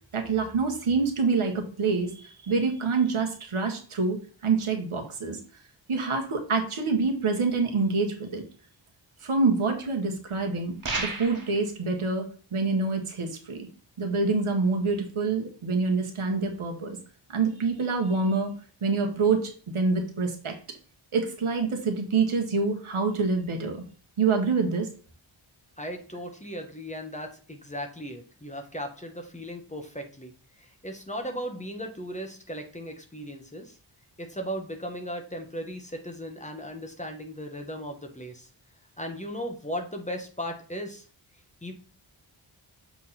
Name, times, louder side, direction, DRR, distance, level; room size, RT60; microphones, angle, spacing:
voice 1, 0.1-4.2 4.4-5.4 5.9-8.4 9.2-12.2 12.5-13.7 14.0-17.0 17.3-18.5 18.8-20.6 21.1-23.8 24.2-24.9, right 4 dB, 85° right, 3 dB, 1.6 m, -26 dB
sound 1, 10.8-11.6, right 3 dB, 40° right, 1.7 m, -31 dB
voice 2, 25.8-33.8 34.2-38.5 39.0-41.0 41.6-41.7, equal, 15° left, 4 dB, 1.3 m, -37 dB
7.3 x 3.8 x 4.2 m, 0.41 s
wide cardioid pair, 100°, 48 cm